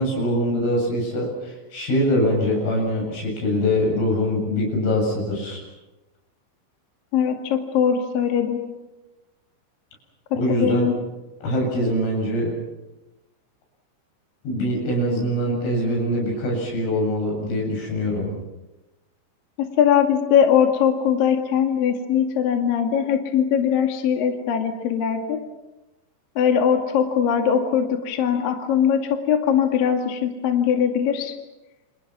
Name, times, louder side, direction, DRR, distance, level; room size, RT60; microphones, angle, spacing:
voice 1, 0.0-5.6 10.3-10.9 11.4-12.5 14.5-18.3, equal, 80° left, 0 dB, 10.5 m, -23 dB
voice 2, 7.1-8.6 10.5-10.9 19.6-25.4 26.4-31.4, left 8 dB, 55° left, 4 dB, 3.2 m, -21 dB
29.5 x 28.0 x 6.1 m, 1.0 s
omnidirectional pair, 5.7 m